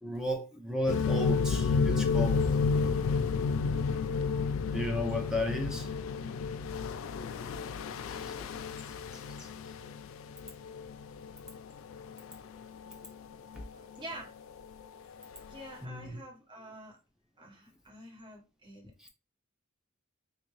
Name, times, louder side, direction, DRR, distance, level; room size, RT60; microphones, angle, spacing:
voice 1, 0.0-2.4 4.7-5.9 8.1-8.5 9.1-9.5 13.5-13.6 15.8-16.2 19.0-19.1, left 1 dB, 5° right, 0.6 m, -34 dB
sound 1, 0.9-12.4 12.8-13.1 13.5-13.6 14.6-14.7 15.4-15.5, left 5 dB, 65° left, 0.3 m, -31 dB
voice 2, 13.7-14.3 15.5-17.0 17.4-19.1, right 1 dB, 25° right, 1.0 m, -47 dB
3.4 x 2.6 x 3.0 m
head